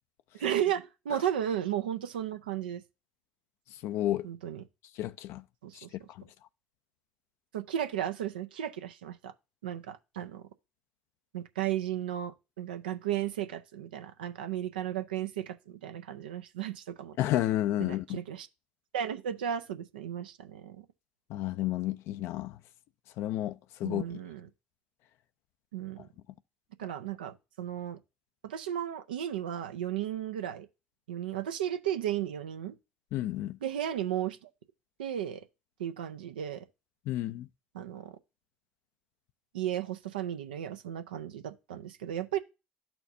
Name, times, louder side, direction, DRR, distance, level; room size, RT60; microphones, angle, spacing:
voice 1, 0.3-2.8 4.2-4.6 5.6-6.1 7.5-9.3 9.6-10.4 11.3-17.2 17.8-18.5 18.9-20.8 23.8-24.5 25.7-26.1 26.8-28.0 28.4-30.7 31.1-32.8 33.6-34.5 35.0-35.4 35.8-36.6 37.7-38.1 39.5-42.4, right 10 dB, 85° right, 0.5 m, -34 dB
voice 2, 3.8-4.3 5.0-5.4 5.7-6.2 17.2-18.2 21.3-22.6 23.2-24.2 33.1-33.6 37.1-37.5, left 14 dB, 65° left, 0.4 m, -31 dB
12.5 x 4.3 x 2.7 m
hypercardioid pair, 65°, 5 cm